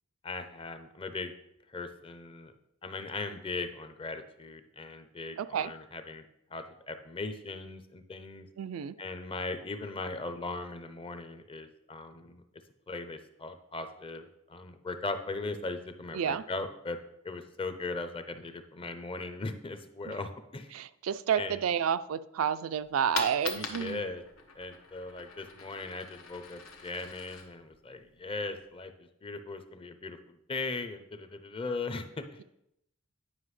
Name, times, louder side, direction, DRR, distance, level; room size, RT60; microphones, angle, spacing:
voice 1, 0.2-1.3 1.7-2.5 2.8-6.2 6.5-8.5 9.0-12.4 12.9-20.8 21.4-21.6 23.5-24.2 24.6-32.4, left 3 dB, 25° left, 9 dB, 0.5 m, -39 dB
voice 2, 5.4-5.7 8.6-9.0 16.1-16.4 20.0-20.2 20.7-24.1, right 8 dB, 75° right, 13 dB, 0.3 m, -30 dB
Coin (dropping), 22.8-28.8, left 5 dB, 90° left, 1.1 m, -43 dB
9.6 x 5.6 x 3.2 m, 0.80 s
head